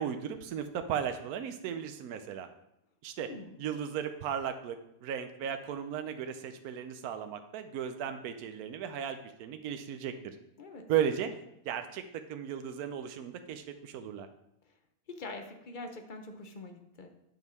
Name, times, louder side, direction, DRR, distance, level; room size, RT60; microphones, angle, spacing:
voice 1, 0.0-2.5 3.0-3.3 3.6-10.4 10.9-11.3 11.6-14.3, right 8 dB, 85° right, 8 dB, 1.1 m, -35 dB
voice 2, 3.2-3.5 10.6-10.9 11.2-11.3 15.1-17.1, left 2 dB, 40° left, 5 dB, 0.9 m, -44 dB
9.3 x 5.4 x 4.6 m, 0.81 s
omnidirectional pair, 1.5 m